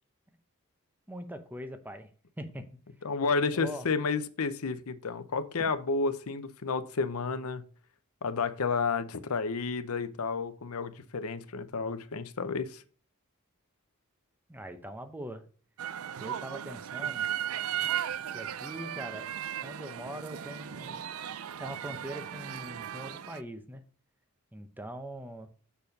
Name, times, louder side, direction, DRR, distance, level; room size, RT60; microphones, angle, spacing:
voice 1, 1.1-2.1 2.4-2.6 3.5-3.9 5.6-5.7 14.5-15.4 16.2-17.3 18.3-19.3 19.6-21.0 21.6-23.8 24.5-25.5, right 1 dB, 10° right, 0.8 m, -42 dB
voice 2, 3.0-7.6 8.2-12.8, left 4 dB, 70° left, 0.7 m, -31 dB
sound 1, 15.8-23.4, right 9 dB, 65° right, 0.4 m, -36 dB
6.8 x 4.5 x 5.3 m
head